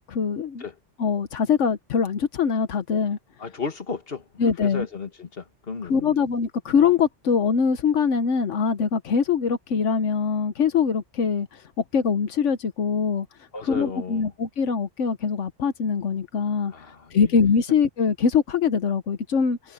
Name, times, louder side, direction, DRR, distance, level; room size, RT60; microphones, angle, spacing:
voice 1, 0.1-0.6 1.0-3.2 4.4-4.9 5.8-13.3 13.6-16.7 17.1-19.7, left 6 dB, 85° left, 1.3 m, -23 dB
voice 2, 3.4-4.2 4.6-6.2 13.5-14.3 16.7-17.3, left 4 dB, 55° left, 2.0 m, -34 dB
omnidirectional pair, 1.2 m